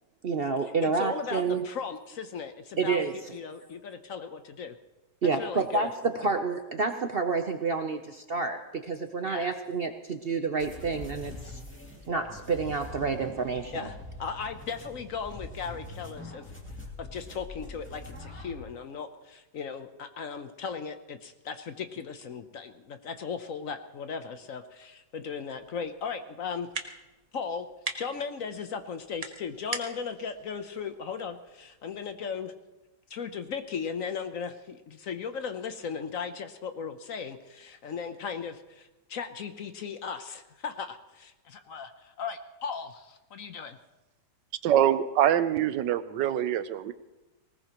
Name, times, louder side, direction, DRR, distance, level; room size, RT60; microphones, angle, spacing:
voice 1, 0.2-1.6 2.8-3.4 5.2-11.6 12.1-13.9, right 4 dB, 55° right, 6 dB, 0.6 m, -29 dB
voice 2, 0.8-4.7 5.4-5.9 6.2-6.3 9.2-9.5 13.7-16.4 17.0-26.7 27.3-27.7 28.0-32.5 33.1-43.8, left 6 dB, 60° left, 8 dB, 1.1 m, -37 dB
sound 1, 10.6-18.6, left 2 dB, 5° left, 2.1 m, -44 dB
sound 2, 25.5-32.3, right 3 dB, 30° right, 0.8 m, -43 dB
voice 3, 44.6-46.9, right 10 dB, 90° right, 13 dB, 1.4 m, -24 dB
19.5 x 19.0 x 3.0 m, 1.1 s
omnidirectional pair, 1.9 m